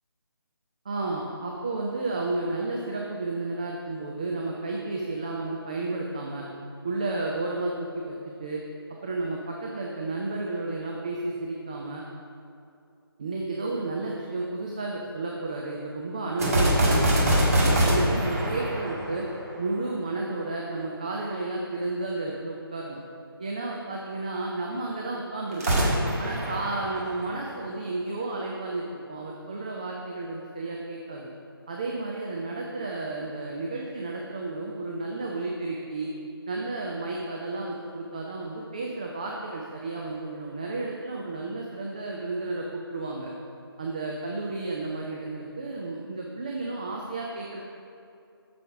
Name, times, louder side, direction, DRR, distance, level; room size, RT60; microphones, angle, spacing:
voice 1, 0.8-6.5 6.8-8.6 9.0-12.0 13.2-17.3 17.7-19.3 19.6-23.0 23.4-25.8 26.2-31.3 31.7-36.1 36.5-43.3 43.8-47.6, right 2 dB, 20° right, -2 dB, 0.4 m, -32 dB
sound 1, 16.4-19.8 25.5-27.6, equal, 35° right, 1.6 m, -24 dB
8.1 x 6.8 x 4.9 m, 2.6 s
figure-of-eight pair, 150°, 13 cm